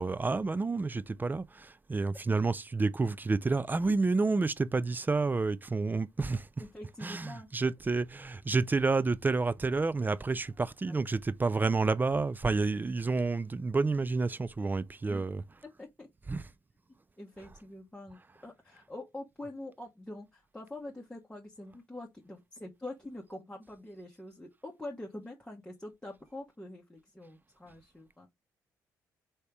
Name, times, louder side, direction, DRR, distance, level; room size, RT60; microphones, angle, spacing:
voice 1, 0.0-6.5 7.0-15.4 16.3-16.4, right 3 dB, 20° right, 0.4 m, -29 dB
voice 2, 6.6-7.7 10.9-11.0 15.1-15.2 15.8-16.1 17.2-28.3, left 1 dB, 10° left, 0.9 m, -45 dB
3.2 x 2.9 x 3.4 m
hypercardioid pair, 45°, 9 cm